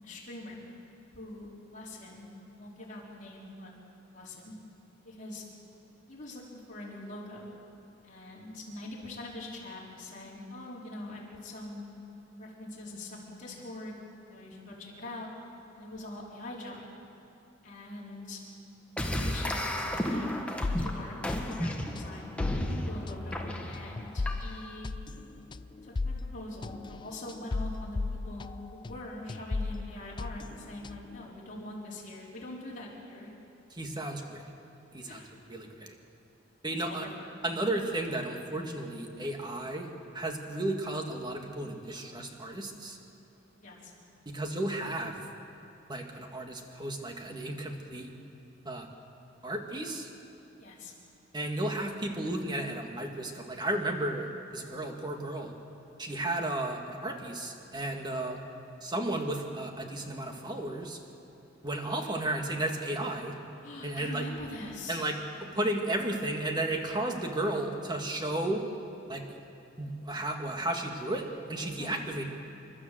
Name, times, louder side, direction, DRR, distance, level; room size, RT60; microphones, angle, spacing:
voice 1, 0.0-0.6 1.1-2.3 2.6-3.7 4.1-4.5 5.0-5.4 6.1-7.5 8.0-11.8 12.4-13.9 14.3-15.3 15.8-16.8 17.6-18.4 19.0-20.4 20.7-24.9 25.8-33.3 35.0-35.3 36.7-37.1 43.6-43.9 50.6-50.9 63.6-65.0 71.7-72.0, left 1 dB, 40° left, -5 dB, 4.6 m, -43 dB
sound 1, 19.0-24.8, equal, 5° left, 1.4 m, -34 dB
sound 2, 20.6-29.0 29.3-31.2, left 3 dB, 25° left, 0.4 m, -36 dB
voice 2, 33.7-34.4 34.9-35.2 35.5-35.9 36.6-37.1 37.4-39.9 40.1-43.0 44.3-45.2 45.9-48.1 48.7-48.9 49.4-50.1 51.3-55.5 56.0-58.4 58.8-61.0 61.6-63.4 63.8-64.3 64.9-68.6 69.1-69.2 69.8-72.2, right 1 dB, 25° right, 3 dB, 1.9 m, -33 dB
28.0 x 12.5 x 7.7 m, 2.7 s
head